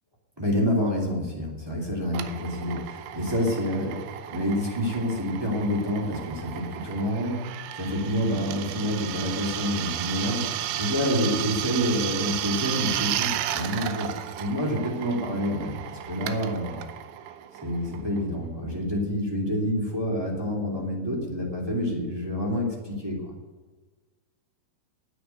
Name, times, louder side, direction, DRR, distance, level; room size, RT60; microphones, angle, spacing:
voice 1, 0.4-4.0 4.3-7.5 7.8-10.4 10.8-16.8 17.6-23.3, equal, 10° right, -2 dB, 1.5 m, -28 dB
Drill, 2.1-18.5, right 12 dB, 90° right, 3.0 m, -34 dB
9.3 x 9.3 x 9.2 m, 1.3 s
omnidirectional pair, 5.0 m